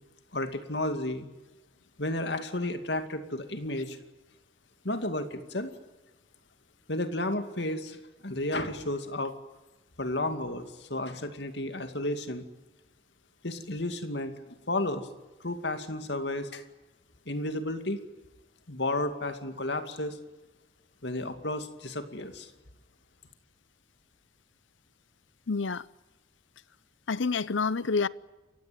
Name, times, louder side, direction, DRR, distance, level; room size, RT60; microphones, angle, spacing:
voice 1, 0.3-1.3 2.0-4.0 4.8-5.7 6.9-8.0 8.2-9.3 10.0-12.4 13.4-15.1 15.4-16.6 17.3-18.0 18.7-20.2 21.0-22.5, left 1 dB, 65° left, 2.4 m, -32 dB
voice 2, 25.5-25.9 27.1-28.1, left 4 dB, 85° left, 0.7 m, -28 dB
29.0 x 16.0 x 9.3 m
head